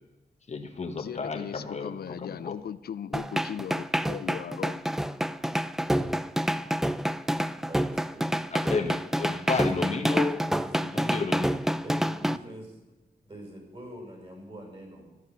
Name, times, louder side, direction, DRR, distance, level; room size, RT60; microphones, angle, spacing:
voice 1, 0.5-2.5 8.5-10.4 11.1-11.8, left 4 dB, 45° left, 1.4 m, -32 dB
voice 2, 1.0-4.8 5.9-6.1, left 9 dB, 75° left, 0.5 m, -38 dB
sound 1, 3.1-12.4, equal, ahead, 0.4 m, -27 dB
voice 3, 7.7-8.4 9.6-10.3 10.6-11.1 11.8-12.8 13.3-15.1, right 1 dB, 35° right, 5.8 m, -44 dB
14.0 x 11.5 x 7.1 m
wide cardioid pair, 160°, 16 cm